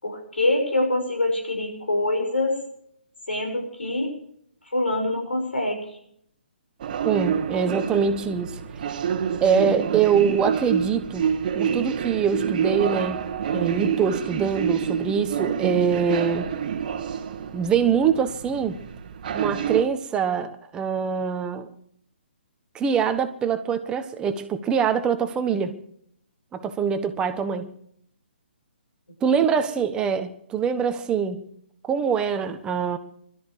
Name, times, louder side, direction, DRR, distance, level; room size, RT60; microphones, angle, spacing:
voice 1, 0.0-2.6 3.3-4.1 4.7-5.8 29.3-29.8, left 2 dB, 90° left, 6.3 m, -25 dB
sound 1, 6.8-19.8, right 7 dB, 45° right, 1.7 m, -28 dB
voice 2, 7.0-8.6 8.9-9.0 9.4-11.3 11.5-13.2 13.5-16.5 17.5-18.8 19.3-21.7 22.7-25.8 26.5-27.7 29.2-31.4 31.8-33.0, right 7 dB, 15° right, 1.3 m, -24 dB
21.5 x 13.0 x 4.8 m
hypercardioid pair, 140°, 6 cm